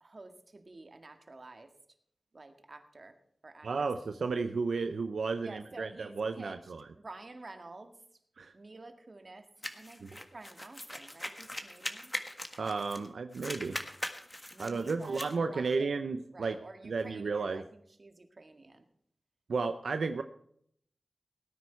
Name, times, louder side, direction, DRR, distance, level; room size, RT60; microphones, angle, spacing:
voice 1, 0.0-1.7 2.3-3.2 3.4-3.9 5.4-7.9 8.5-9.5 9.7-12.1 14.5-15.2 15.5-16.0 16.3-18.9, right 2 dB, 50° right, 7 dB, 1.8 m, -50 dB
voice 2, 3.6-6.9 8.4-8.5 10.0-10.1 12.6-13.8 14.6-16.6 16.8-17.6 19.5-20.2, right 4 dB, 85° right, 9 dB, 0.6 m, -33 dB
sound 1, 9.6-13.1 13.3-15.3, left 1 dB, 15° left, 1.6 m, -41 dB
18.0 x 9.7 x 4.6 m, 0.67 s
wide cardioid pair, 60°, 0 cm